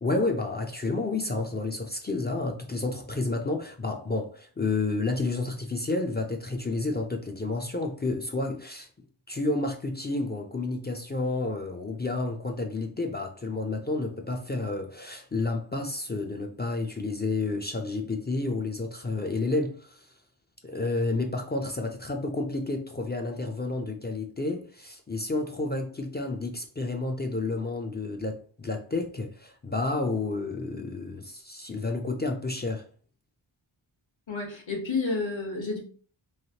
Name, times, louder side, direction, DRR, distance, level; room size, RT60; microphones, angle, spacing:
voice 1, 0.0-8.9 9.3-20.1 20.6-32.8, left 2 dB, 25° left, 0.3 m, -30 dB
voice 2, 34.3-35.8, left 3 dB, 65° left, 1.2 m, -30 dB
3.2 x 2.4 x 2.8 m
wide cardioid pair, 90°, 49 cm